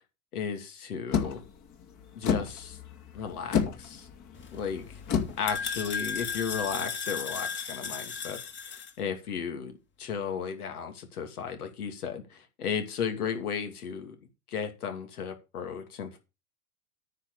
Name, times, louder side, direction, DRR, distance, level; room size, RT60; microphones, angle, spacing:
voice 1, 0.3-1.4 2.2-2.8 3.1-4.1 4.5-5.0 5.4-8.4 8.7-9.7 10.0-14.2 14.5-16.2, left 7 dB, 80° left, 6 dB, 2.8 m, -34 dB
sound 1, 1.1-6.7, left 7 dB, 40° left, 2.5 m, -32 dB
sound 2, 4.3-8.9, left 6 dB, 25° left, 2.0 m, -36 dB
9.7 x 5.9 x 6.8 m, 0.28 s
hypercardioid pair, 105°, 45 cm